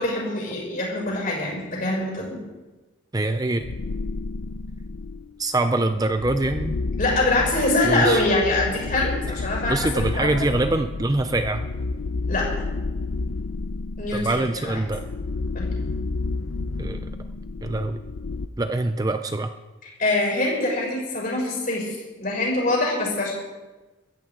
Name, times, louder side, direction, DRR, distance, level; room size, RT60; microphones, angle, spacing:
voice 1, 0.0-2.4 6.8-10.3 12.3-12.5 14.0-14.8 15.5-15.7 20.0-23.3, left 2 dB, 40° left, -3 dB, 6.2 m, -24 dB
voice 2, 3.1-3.6 5.4-6.8 7.8-8.2 9.7-11.6 14.1-15.0 16.8-17.1 17.6-18.0 18.6-19.5, right 2 dB, 20° right, 8 dB, 0.5 m, -24 dB
sound 1, 3.6-5.3 5.9-18.5, left 3 dB, 80° left, 0.6 m, -30 dB
22.5 x 14.0 x 3.8 m, 1.2 s
head